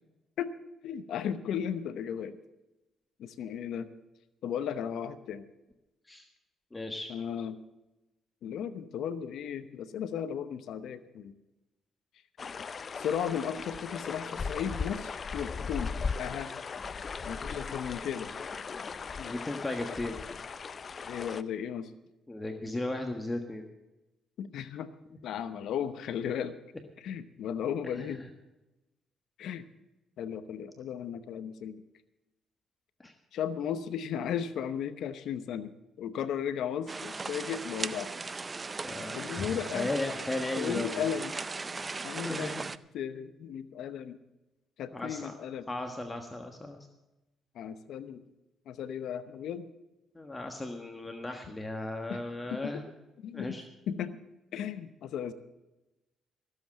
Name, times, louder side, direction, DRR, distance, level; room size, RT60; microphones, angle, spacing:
voice 1, 0.8-2.4 3.2-3.9 4.4-5.5 7.1-7.6 8.4-11.3 12.9-16.5 17.2-18.3 19.2-19.3 21.1-21.9 24.4-24.9 25.2-26.5 27.0-28.2 29.4-29.6 30.2-31.8 33.3-38.1 39.1-39.9 40.6-41.4 42.0-42.5 42.9-44.2 44.8-45.7 47.5-48.2 48.7-49.7 52.1-52.2 52.5-52.8 53.2-53.6 53.9-54.2 54.5-55.3, left 8 dB, 75° left, 12 dB, 0.8 m, -35 dB
voice 2, 6.7-7.1 17.5-17.7 19.2-20.2 22.3-23.7 28.0-28.3 33.0-33.1 38.8-41.1 42.3-42.7 44.9-45.3 45.7-46.8 50.1-52.8 53.3-53.6, left 2 dB, 20° left, 4 dB, 1.4 m, -36 dB
sound 1, 12.4-21.4, left 5 dB, 40° left, 0.6 m, -38 dB
sound 2, 36.9-42.8, right 3 dB, 30° right, 0.5 m, -38 dB
15.5 x 7.8 x 7.6 m, 1.0 s
cardioid pair, 90°, 0 cm